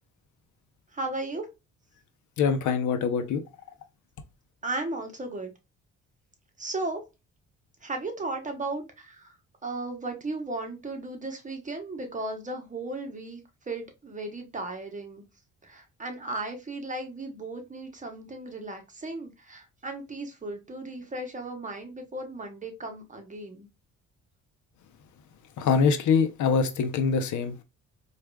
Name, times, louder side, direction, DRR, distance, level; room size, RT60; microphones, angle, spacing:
voice 1, 0.9-1.5 4.6-5.5 6.6-7.0 7.8-9.3 9.6-13.4 13.7-15.2 15.6-23.7, right 2 dB, 25° right, 1.0 m, -35 dB
voice 2, 2.4-3.4 25.6-27.6, left 5 dB, 75° left, 0.7 m, -24 dB
4.6 x 2.4 x 2.2 m
cardioid pair, 90°, 30 cm